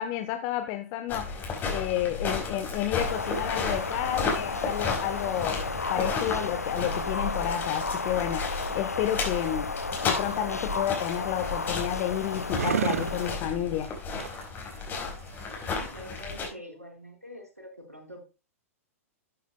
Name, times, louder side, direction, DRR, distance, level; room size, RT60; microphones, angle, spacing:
voice 1, 0.0-9.7 10.0-13.9, left 12 dB, 40° left, 1.1 m, -31 dB
sound 1, 1.1-16.5, left 4 dB, 25° left, 4.4 m, -33 dB
sound 2, 3.0-13.4, left 4 dB, 90° left, 0.3 m, -33 dB
sound 3, 10.0-16.0, right 7 dB, 70° right, 0.5 m, -35 dB
voice 2, 15.6-18.2, equal, 85° right, 4.4 m, -45 dB
12.5 x 9.0 x 2.2 m
figure-of-eight pair, 105°, 8 cm